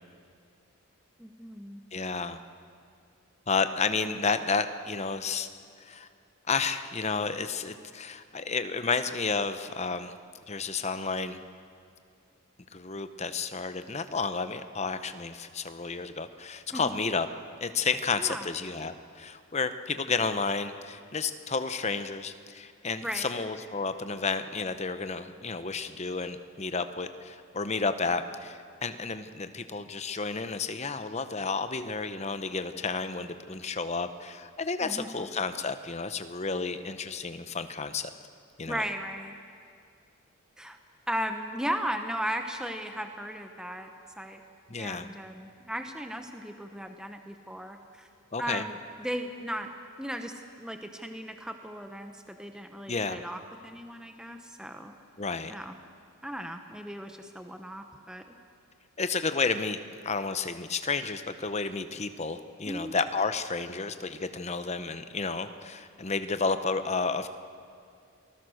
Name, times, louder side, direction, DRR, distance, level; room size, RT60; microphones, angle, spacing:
voice 1, 1.2-1.8 16.7-17.0 18.2-18.5 23.0-23.3 34.8-35.3 38.7-39.4 40.6-40.8 41.1-44.4 44.8-48.1 48.4-49.7 50.0-54.9 55.5-55.7 56.2-58.3 62.6-63.0, equal, 5° right, 6 dB, 0.9 m, -36 dB
voice 2, 1.9-2.4 3.5-5.5 5.8-6.1 6.5-10.1 10.5-11.4 12.7-17.3 17.6-38.1 38.6-38.8 44.7-45.1 48.3-48.6 52.9-53.2 55.2-55.5 59.0-67.3, left 4 dB, 30° left, 10 dB, 0.8 m, -31 dB
27.5 x 20.0 x 6.5 m, 2.4 s
head